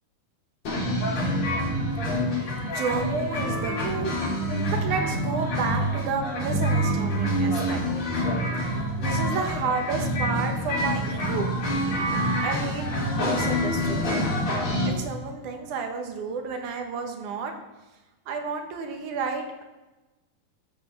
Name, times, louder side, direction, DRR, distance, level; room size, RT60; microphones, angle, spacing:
sound 1, 0.7-14.9, equal, 50° left, 4.1 m, -26 dB
voice 1, 2.4-4.2 4.7-7.8 8.6-11.5 12.4-14.0 15.0-17.5 18.3-19.6, right 5 dB, 70° right, 4 dB, 2.5 m, -31 dB
13.5 x 7.9 x 3.4 m, 1.1 s
omnidirectional pair, 3.9 m